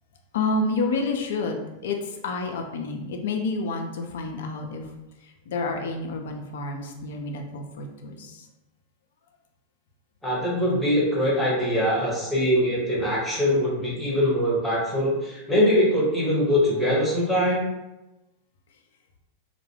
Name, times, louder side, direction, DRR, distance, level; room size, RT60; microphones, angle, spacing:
voice 1, 0.3-4.9 5.2-8.5, left 3 dB, 60° left, 3 dB, 0.4 m, -29 dB
voice 2, 10.2-17.7, equal, 5° left, -5 dB, 0.8 m, -22 dB
2.2 x 2.1 x 2.9 m, 0.97 s
figure-of-eight pair, 90°, 0 cm